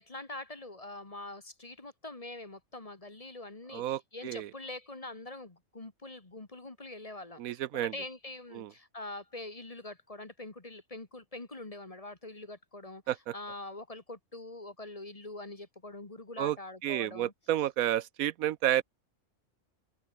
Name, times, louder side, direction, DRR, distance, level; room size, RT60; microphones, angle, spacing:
voice 1, 0.0-13.0 13.3-17.3, left 2 dB, 25° left, 1.8 m, -44 dB
voice 2, 3.7-4.5 7.4-7.9 8.5-8.7 13.1-13.3 16.4-16.6 16.8-18.8, right 12 dB, 80° right, 1.1 m, -31 dB
omnidirectional pair, 1.5 m